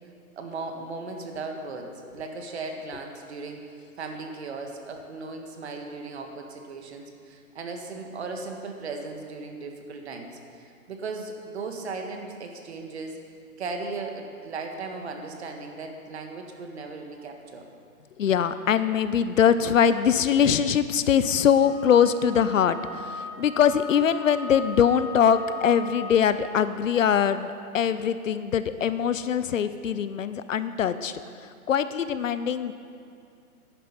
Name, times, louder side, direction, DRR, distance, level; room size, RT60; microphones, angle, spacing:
voice 1, 0.4-3.6 4.0-13.2 13.6-17.7, right 3 dB, 45° right, 4 dB, 1.5 m, -37 dB
voice 2, 18.2-32.7, left 8 dB, 60° left, 13 dB, 0.6 m, -22 dB
Wind instrument woodwind instrument, 21.6-26.3, left 3 dB, 20° left, 1.2 m, -39 dB
11.0 x 9.7 x 5.5 m, 2.4 s
hypercardioid pair, 165°, 44 cm